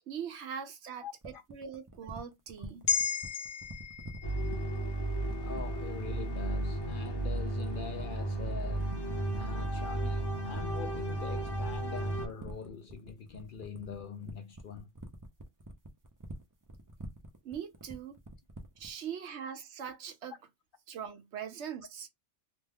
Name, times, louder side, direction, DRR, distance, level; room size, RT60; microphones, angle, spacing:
voice 1, 0.1-2.9 17.4-18.2 18.8-20.3 20.9-22.1, right 8 dB, 75° right, 1.0 m, -41 dB
sound 1, 1.2-19.0, right 2 dB, 30° right, 0.4 m, -47 dB
sound 2, 2.9-7.4 7.8-7.9, left 7 dB, 85° left, 0.9 m, -37 dB
sound 3, 4.2-12.3, right 2 dB, 25° left, 0.7 m, -34 dB
voice 2, 5.4-9.0 9.3-14.9, left 6 dB, 60° left, 0.6 m, -43 dB
3.0 x 2.2 x 3.4 m
omnidirectional pair, 1.2 m